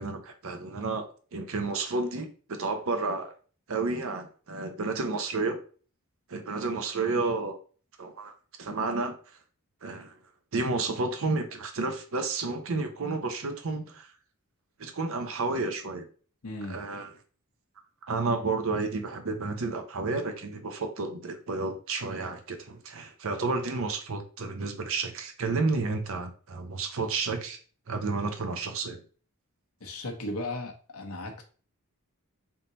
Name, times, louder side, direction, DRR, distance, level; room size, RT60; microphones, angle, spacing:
voice 1, 0.0-3.3 3.7-5.6 6.3-7.6 8.0-8.3 8.6-9.2 9.8-10.2 10.5-14.1 14.8-16.1 16.7-17.1 18.1-27.6 27.9-29.0, right 3 dB, 65° right, 7 dB, 0.7 m, -31 dB
voice 2, 16.4-16.8 29.8-31.4, left 1 dB, 70° left, 3 dB, 0.9 m, -36 dB
3.7 x 2.8 x 3.9 m, 0.39 s
head